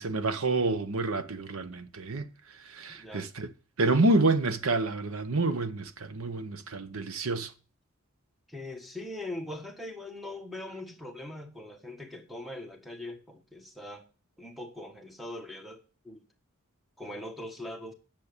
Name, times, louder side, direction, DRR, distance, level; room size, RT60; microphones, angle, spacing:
voice 1, 0.0-2.3 2.7-3.5 3.8-7.5, right 2 dB, 75° right, 1.0 m, -28 dB
voice 2, 2.9-3.3 8.5-14.0 14.4-16.2 17.0-17.9, left 1 dB, ahead, 1.4 m, -41 dB
9.8 x 7.2 x 6.8 m
head